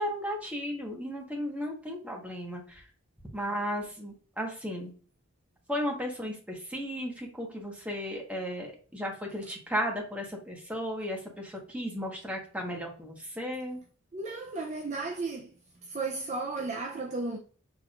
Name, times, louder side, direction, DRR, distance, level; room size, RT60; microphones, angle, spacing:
voice 1, 0.0-2.8 3.3-4.9 5.7-13.8, equal, 5° right, 1.3 m, -35 dB
voice 2, 14.1-15.5 15.8-17.4, right 3 dB, 35° right, 0.5 m, -34 dB
6.1 x 3.5 x 2.4 m
head